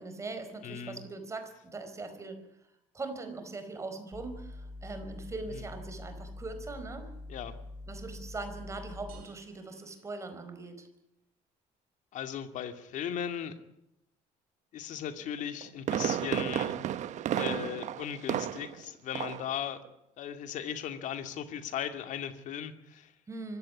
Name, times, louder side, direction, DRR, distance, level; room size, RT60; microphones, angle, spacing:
voice 1, 0.0-2.5 2.9-7.1 7.9-10.9 23.3-23.6, right 3 dB, 20° right, 8 dB, 4.7 m, -41 dB
voice 2, 0.6-1.1 5.5-5.6 7.3-7.6 12.1-13.5 14.7-16.7 17.3-19.8 20.2-23.1, left 9 dB, 60° left, 8 dB, 2.5 m, -37 dB
sound 1, 4.1-9.2, left 2 dB, 15° left, 2.0 m, -45 dB
sound 2, 9.1-10.9, right 9 dB, 80° right, 5.4 m, -62 dB
Fireworks, 15.4-18.8 19.1-19.5 19.8-19.9, right 11 dB, 55° right, 1.2 m, -32 dB
24.5 x 15.5 x 9.8 m, 0.81 s
cardioid pair, 155°, 14 cm